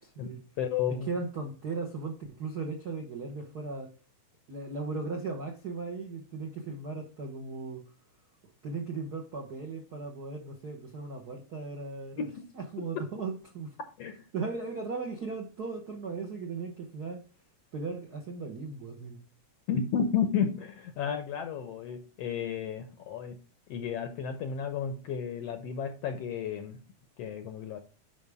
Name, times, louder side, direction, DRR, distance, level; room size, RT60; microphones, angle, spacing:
voice 1, 0.0-0.4 1.0-3.9 4.5-7.8 8.6-12.3 12.5-13.7 14.3-17.2 17.7-19.2, right 4 dB, 65° right, 0.9 m, -37 dB
voice 2, 0.6-1.1 12.2-12.4 14.0-14.2 19.7-23.4 23.7-26.8 27.2-27.8, left 7 dB, 70° left, 1.5 m, -32 dB
11.5 x 5.0 x 3.5 m
omnidirectional pair, 3.6 m